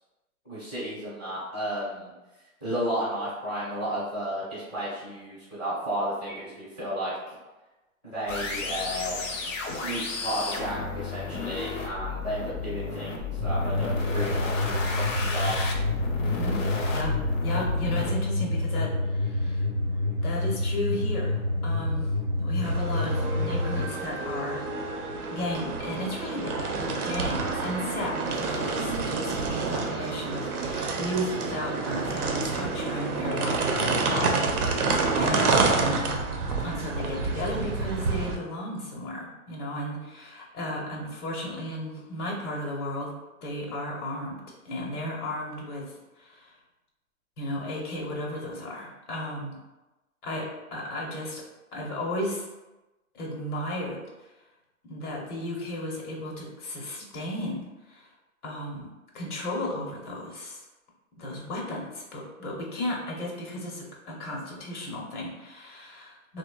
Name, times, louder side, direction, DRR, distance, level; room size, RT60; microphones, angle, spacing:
voice 1, 0.4-2.1 2.6-7.2 8.0-9.5 9.8-15.6, right 1 dB, 10° left, -16 dB, 0.4 m, -33 dB
sound 1, 8.3-18.1, left 4 dB, 60° left, 0.6 m, -33 dB
sound 2, 13.4-23.8, left 2 dB, 45° right, 0.5 m, -28 dB
voice 2, 17.4-19.6 20.2-22.1 22.4-24.7 25.3-36.2 36.6-43.1 43.4-45.8 46.2-46.5 47.4-49.6 50.2-50.5 50.7-51.4 51.7-52.5 53.1-54.0 54.8-58.1 58.4-58.9 59.1-60.6 61.2-66.4, left 1 dB, 85° left, -2 dB, 0.9 m, -34 dB
sound 3, 22.6-38.4, right 4 dB, 90° right, 0.6 m, -28 dB
2.8 x 2.1 x 2.2 m, 1.1 s
hypercardioid pair, 150°, 44 cm